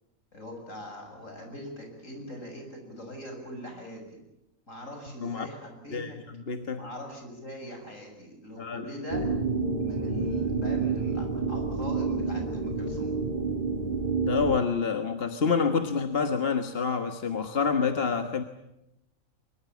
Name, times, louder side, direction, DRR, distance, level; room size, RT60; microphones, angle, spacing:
voice 1, 0.3-4.2 4.7-6.2 6.8-9.3 9.8-13.2, left 1 dB, 70° left, 7.2 m, -41 dB
voice 2, 5.9-6.9 8.6-8.9 14.2-18.4, left 5 dB, 45° left, 1.6 m, -28 dB
sound 1, 9.1-14.6, right 4 dB, 35° right, 2.2 m, -29 dB
24.0 x 23.5 x 8.5 m
omnidirectional pair, 1.4 m